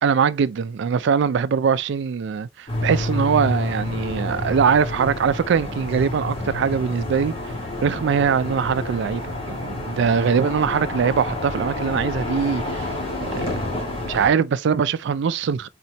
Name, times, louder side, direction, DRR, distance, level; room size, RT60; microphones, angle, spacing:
voice 1, 0.0-7.3 7.8-12.9 13.2-13.6 14.0-15.7, right 6 dB, 65° right, 0.3 m, -22 dB
sound 1, 2.7-14.3, left 1 dB, 30° left, 1.7 m, -29 dB
4.2 x 4.2 x 2.9 m
head